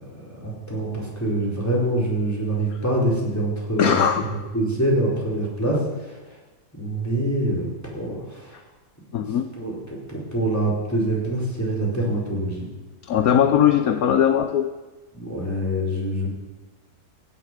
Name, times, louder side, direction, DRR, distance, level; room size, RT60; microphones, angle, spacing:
voice 1, 0.1-4.0 4.5-6.2 6.8-8.6 9.5-9.8 10.1-12.6 15.1-16.3, right 1 dB, 10° left, -5 dB, 4.6 m, -25 dB
voice 2, 3.8-4.2 9.1-9.5 13.0-14.7, left 9 dB, 65° left, 8 dB, 1.2 m, -19 dB
16.5 x 7.2 x 9.3 m, 1.2 s
omnidirectional pair, 1.8 m